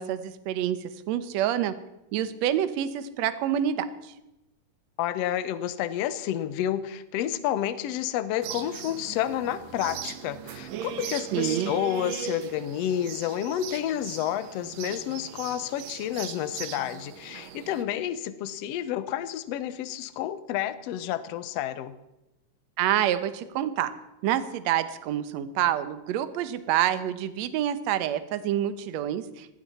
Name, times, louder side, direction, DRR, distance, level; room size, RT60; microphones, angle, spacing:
voice 1, 0.0-1.7 2.1-4.1 11.3-11.7 22.8-23.9 24.2-29.5, right 11 dB, 70° right, 12 dB, 1.9 m, -27 dB
voice 2, 5.0-21.9, left 11 dB, 70° left, 13 dB, 1.6 m, -30 dB
sound 1, 8.4-17.8, right 10 dB, 90° right, 2.6 m, -39 dB
19.5 x 15.5 x 4.3 m, 0.91 s
omnidirectional pair, 3.7 m